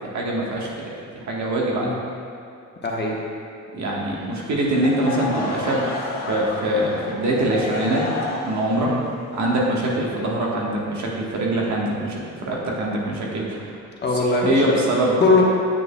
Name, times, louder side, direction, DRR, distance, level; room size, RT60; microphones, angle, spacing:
voice 1, 0.0-1.9 3.7-5.9 6.3-8.1 8.4-9.0 9.4-13.7 14.1-15.2, right 1 dB, 70° right, -3 dB, 1.4 m, -23 dB
voice 2, 2.8-3.2 8.8-9.0 14.0-14.7 15.2-15.4, left 3 dB, 35° left, -3 dB, 1.2 m, -20 dB
Laughter / Crowd, 4.6-10.6, left 3 dB, 65° left, 1.2 m, -31 dB
8.3 x 6.7 x 2.2 m, 2.6 s
cardioid pair, 90°, 30 cm